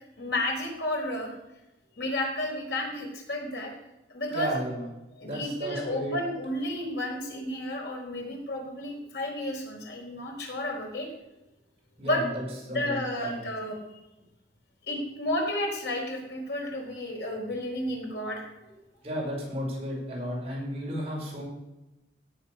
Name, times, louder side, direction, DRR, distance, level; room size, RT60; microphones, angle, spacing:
voice 1, 0.2-1.4 2.0-3.7 4.1-4.5 5.2-11.1 12.0-12.2 12.7-13.8 14.9-18.7, left 1 dB, 90° left, 0 dB, 4.5 m, -32 dB
voice 2, 4.3-4.9 5.2-6.2 12.0-13.4 19.0-21.4, equal, 35° right, -3 dB, 5.8 m, -33 dB
16.5 x 7.4 x 6.8 m, 0.97 s
head